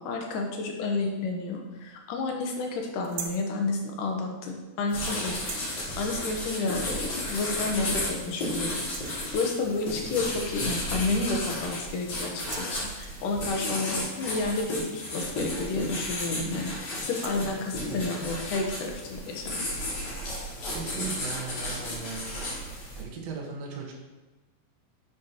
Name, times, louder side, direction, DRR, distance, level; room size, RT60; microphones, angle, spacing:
voice 1, 0.0-19.6, left 3 dB, 70° left, 1 dB, 2.5 m, -31 dB
sound 1, 3.0-3.5 5.3-5.9 7.2-7.3 7.8-7.9 8.3-8.5 8.8-9.3 10.7-10.8 11.1-11.8 12.3-13.3 15.6-15.9 16.2-16.5 16.9-17.5 18.2-18.7, right 6 dB, 80° right, 1.5 m, -42 dB
sound 2, 4.9-23.0, left 1 dB, 45° left, 3.0 m, -33 dB
voice 2, 20.7-22.4 22.9-23.9, right 5 dB, 55° right, -1 dB, 2.1 m, -37 dB
10.5 x 7.3 x 3.0 m, 1.1 s
omnidirectional pair, 4.2 m